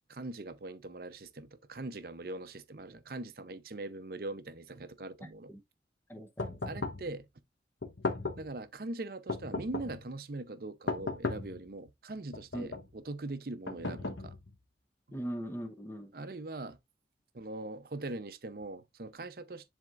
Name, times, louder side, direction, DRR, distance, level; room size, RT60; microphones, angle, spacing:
voice 1, 0.1-5.5 6.7-7.3 8.4-14.4 16.1-16.8 17.3-19.7, right 2 dB, 55° right, 0.7 m, -41 dB
voice 2, 5.2-5.6 6.1-6.6 12.5-12.7 15.1-16.1, right 1 dB, 15° left, 0.8 m, -40 dB
sound 1, 6.4-7.1 7.8-8.5 9.3-10.0 10.9-11.6 12.3-12.9 13.7-14.5, left 3 dB, 80° left, 1.1 m, -36 dB
10.5 x 3.6 x 2.4 m
head